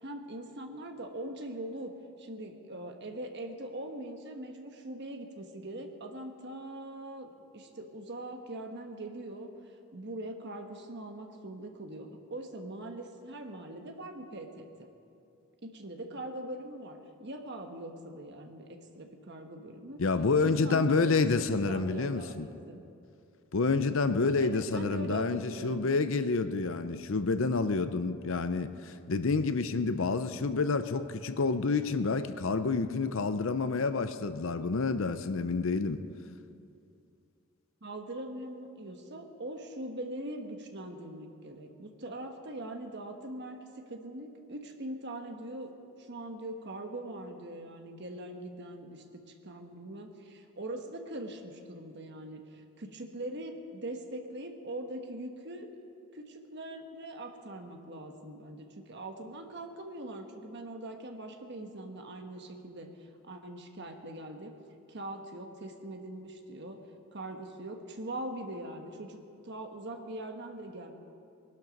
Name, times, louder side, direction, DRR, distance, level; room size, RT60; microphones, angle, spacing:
voice 1, 0.0-14.9 15.6-20.0 20.4-22.8 24.4-25.9 37.8-45.7 46.0-55.7 56.1-64.5 64.9-66.8 67.1-70.9, right 1 dB, 50° right, 4 dB, 1.3 m, -42 dB
voice 2, 20.0-22.5 23.5-36.0, left 4 dB, 60° left, 11 dB, 0.6 m, -28 dB
20.5 x 12.0 x 5.3 m, 2.6 s
head